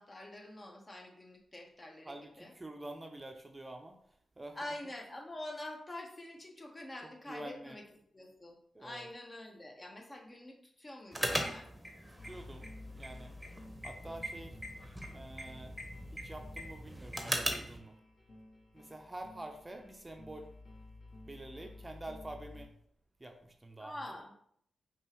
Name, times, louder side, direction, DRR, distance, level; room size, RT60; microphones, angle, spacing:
voice 1, 0.0-2.5 4.5-7.8 8.1-11.7 23.8-24.3, left 1 dB, 35° left, 1 dB, 1.0 m, -46 dB
voice 2, 2.0-4.0 4.4-4.6 7.3-7.8 8.7-9.1 12.2-13.3 13.8-14.6 15.1-15.7 16.1-17.9 18.7-20.5 21.3-22.7 23.2-24.2, right 1 dB, 25° right, 4 dB, 0.6 m, -47 dB
sound 1, 11.1-17.8, right 1 dB, 10° right, 0.9 m, -40 dB
sound 2, 12.2-22.7, left 2 dB, 50° left, 1.1 m, -52 dB
5.2 x 2.5 x 3.0 m, 0.66 s
supercardioid pair, 40°, 0 cm